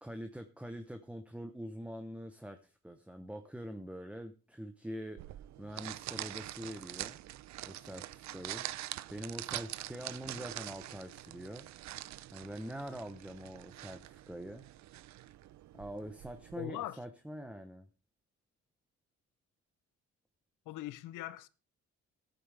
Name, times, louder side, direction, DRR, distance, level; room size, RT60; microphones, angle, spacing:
voice 1, 0.0-5.2 5.6-7.2 7.6-8.7 9.1-11.7 12.3-14.7 15.7-17.9, equal, 5° right, 0.9 m, -44 dB
sound 1, 5.2-16.6, right 14 dB, 65° right, 0.5 m, -45 dB
voice 2, 16.6-17.0 20.7-21.5, left 15 dB, 85° left, 0.7 m, -41 dB
14.0 x 9.1 x 3.4 m
cardioid pair, 90°, 30 cm